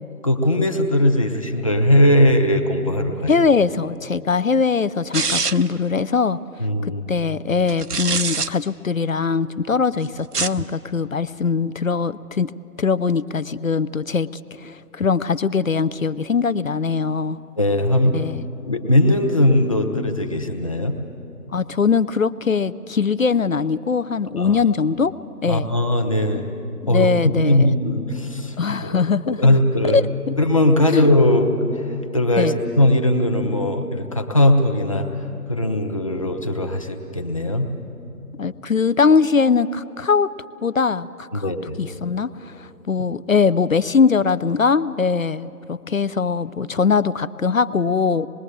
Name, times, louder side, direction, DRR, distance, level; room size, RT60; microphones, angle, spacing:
voice 1, 0.2-3.3 6.6-7.0 17.6-18.2 18.7-20.9 24.4-24.6 25.5-26.5 26.9-28.6 28.8-29.0 29.3-30.0 30.4-35.1 35.5-37.7 41.3-41.8, left 1 dB, 20° left, 3 dB, 0.9 m, -19 dB
voice 2, 3.3-6.4 6.8-12.5 12.8-17.4 18.1-18.4 21.5-25.1 25.4-25.7 26.8-27.7 28.6-29.5 29.8-30.3 30.9-31.1 32.4-32.5 38.4-40.3 40.6-41.5 41.8-48.3, left 5 dB, 55° left, 15 dB, 0.6 m, -21 dB
sound 1, 5.1-5.8 7.7-8.5 10.2-10.6, right 5 dB, 75° right, 0.9 m, -24 dB
25.5 x 21.0 x 7.9 m, 2.8 s
figure-of-eight pair, 155°, 48 cm